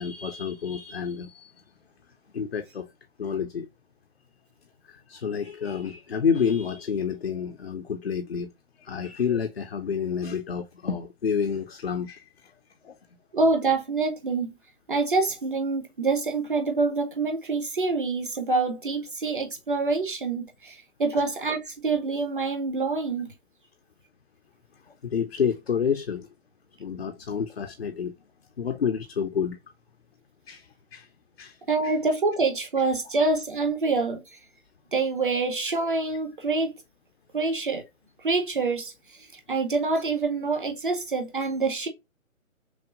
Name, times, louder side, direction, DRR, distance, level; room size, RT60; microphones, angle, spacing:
voice 1, 0.0-1.5 2.3-2.9 3.2-3.7 5.1-8.5 8.8-12.2 12.8-12.9 21.1-21.2 25.0-26.3 26.8-28.1 28.6-29.6 30.5-31.1 31.4-31.6 31.8-31.9, left 7 dB, 50° left, 0.4 m, -29 dB
voice 2, 13.3-14.5 14.9-23.3 31.7-34.2 34.9-36.7 37.3-37.8 38.2-38.9 39.5-41.9, right 3 dB, 40° right, 0.7 m, -26 dB
5.9 x 2.1 x 2.4 m
figure-of-eight pair, 135°, 42 cm